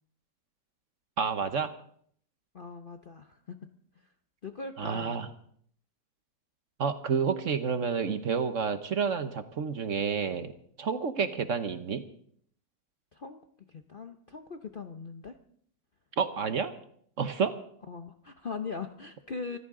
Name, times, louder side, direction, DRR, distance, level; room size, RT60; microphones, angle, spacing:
voice 1, 1.2-1.7 4.8-5.3 6.8-12.0 16.2-16.7 17.2-17.5, right 6 dB, 50° right, 10 dB, 1.2 m, -29 dB
voice 2, 2.5-3.6 4.0-4.1 4.4-5.2 11.2-11.4 13.1-13.4 13.7-15.3 17.9-19.6, left 4 dB, 45° left, 6 dB, 0.7 m, -40 dB
25.0 x 14.0 x 3.8 m, 0.62 s
omnidirectional pair, 1.8 m